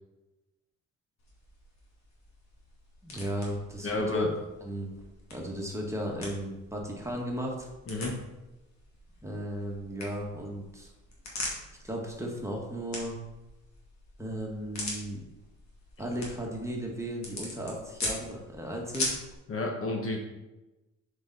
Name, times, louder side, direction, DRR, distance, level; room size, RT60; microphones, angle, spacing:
sound 1, 1.2-19.4, left 2 dB, 65° left, 2.3 m, -42 dB
voice 1, 3.0-4.3 4.6-4.9 5.3-7.7 9.2-10.9 11.8-13.2 14.2-15.2 16.0-19.1, equal, 10° right, -1 dB, 1.6 m, -35 dB
voice 2, 3.8-4.3 7.9-8.1 19.5-20.2, left 2 dB, 45° left, 1 dB, 1.4 m, -30 dB
6.9 x 5.1 x 4.1 m, 1.0 s
cardioid pair, 90°, 30 cm